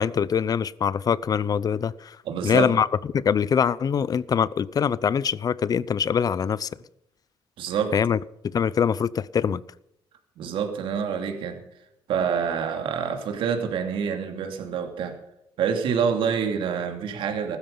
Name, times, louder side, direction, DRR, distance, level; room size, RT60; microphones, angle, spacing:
voice 1, 0.0-2.2 2.4-2.9 3.1-6.7 7.9-8.2 8.5-9.6, left 7 dB, 45° left, 0.6 m, -23 dB
voice 2, 2.2-2.7 7.6-7.9 10.4-11.6 12.1-15.2 15.6-17.6, right 7 dB, 80° right, 2.6 m, -27 dB
15.5 x 13.0 x 5.6 m
cardioid pair, 90°, 9 cm